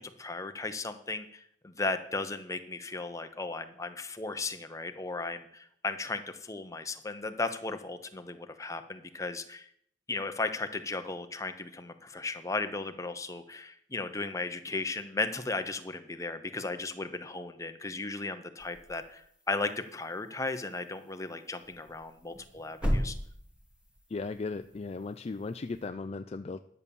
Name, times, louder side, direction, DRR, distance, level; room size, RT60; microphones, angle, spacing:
voice 1, 0.0-9.7 10.1-23.1, left 3 dB, 15° left, 8 dB, 0.8 m, -36 dB
sound 1, 18.6-25.9, equal, 5° right, 1.6 m, -39 dB
voice 2, 24.1-26.6, left 3 dB, 35° left, 9 dB, 0.4 m, -36 dB
11.0 x 6.9 x 7.0 m, 0.67 s
head